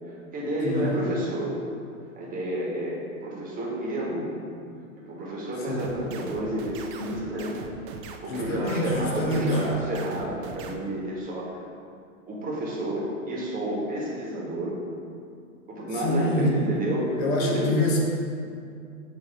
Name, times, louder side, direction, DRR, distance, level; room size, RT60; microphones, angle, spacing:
voice 1, 0.1-1.6 2.1-4.4 5.0-7.6 8.2-11.6 12.3-14.8 15.7-17.7, right 1 dB, 20° right, -4 dB, 1.4 m, -30 dB
voice 2, 0.6-1.0 5.6-6.2 8.3-9.6 15.9-16.6 17.2-18.0, left 1 dB, 40° left, -2 dB, 1.1 m, -26 dB
sound 1, 5.8-10.7, right 5 dB, 40° right, 0.5 m, -40 dB
7.5 x 2.9 x 4.3 m, 2.4 s
hypercardioid pair, 120°, 42 cm